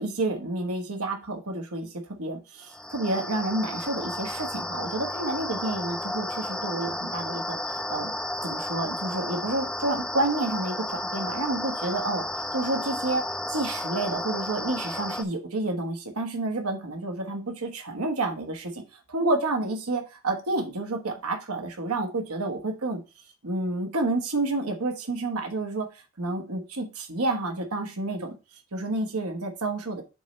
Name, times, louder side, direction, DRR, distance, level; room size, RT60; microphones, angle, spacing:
voice 1, 0.0-1.9 2.2-7.6 7.9-8.1 8.4-12.2 12.5-13.2 13.5-23.0 23.4-25.9 26.2-28.4 28.7-30.0, right 2 dB, 80° right, 5 dB, 1.3 m, -29 dB
sound 1, 2.7-15.2, left 1 dB, 5° left, 0.4 m, -33 dB
7.5 x 3.3 x 5.1 m, 0.30 s
head